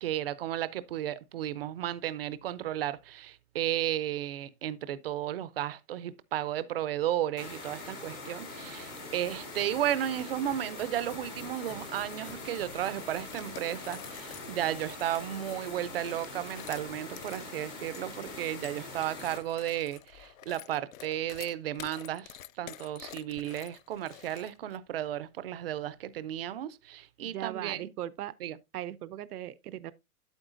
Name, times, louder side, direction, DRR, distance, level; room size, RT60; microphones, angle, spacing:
voice 1, 0.0-22.3 22.6-27.9 28.4-28.6, right 12 dB, 40° right, 0.5 m, -34 dB
sound 1, 7.4-19.4, left 2 dB, 10° left, 0.5 m, -43 dB
sound 2, 8.6-16.9, left 9 dB, 45° left, 1.3 m, -54 dB
sound 3, 13.3-15.3 15.9-24.8, left 13 dB, 60° left, 0.5 m, -49 dB
voice 2, 27.2-28.4 28.7-29.9, right 12 dB, 80° right, 0.6 m, -38 dB
8.9 x 8.0 x 2.5 m
hypercardioid pair, 165°, 45 cm